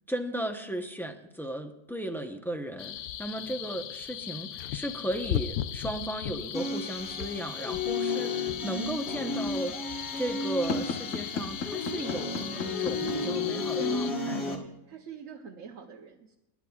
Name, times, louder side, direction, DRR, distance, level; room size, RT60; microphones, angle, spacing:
voice 1, 0.1-2.9 3.2-9.7 10.1-14.7, right 1 dB, ahead, 3 dB, 0.6 m, -35 dB
sound 1, 2.8-14.1, left 11 dB, 90° left, 1.1 m, -38 dB
sound 2, 6.5-14.6, left 3 dB, 50° left, 1.8 m, -33 dB
sound 3, 10.3-13.4, left 6 dB, 65° left, 1.6 m, -35 dB
voice 2, 13.7-14.2 14.6-16.4, right 6 dB, 65° right, 0 dB, 1.2 m, -44 dB
27.0 x 11.0 x 2.4 m, 0.91 s
omnidirectional pair, 1.5 m